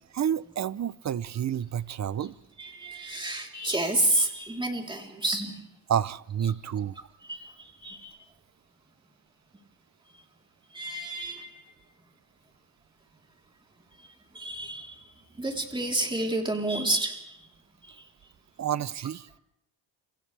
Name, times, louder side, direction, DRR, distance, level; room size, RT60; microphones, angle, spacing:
voice 1, 0.1-2.3 5.9-7.0 18.6-19.3, right 9 dB, 40° right, 18 dB, 0.7 m, -29 dB
voice 2, 2.6-5.6 7.3-8.1 10.7-11.6 14.3-15.0 15.4-17.5 17.8-18.0, right 1 dB, 10° right, 1 dB, 3.7 m, -30 dB
29.5 x 26.5 x 3.4 m, 0.75 s
cardioid pair, 115°, 45 cm